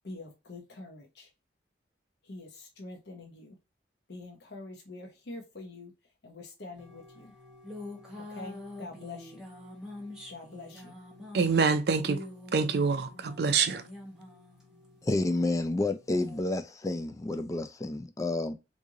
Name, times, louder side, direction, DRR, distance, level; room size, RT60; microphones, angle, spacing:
voice 1, 0.0-1.3 2.2-3.6 4.1-5.9 6.2-7.3 8.2-9.5 10.3-11.0, left 2 dB, 65° left, 0.9 m, -45 dB
sound 1, 6.7-16.4, left 2 dB, 5° right, 1.0 m, -46 dB
voice 2, 11.3-12.2 12.5-13.8, right 5 dB, 65° right, 0.5 m, -26 dB
voice 3, 15.0-18.5, left 2 dB, 20° left, 0.3 m, -30 dB
3.1 x 2.6 x 3.6 m
head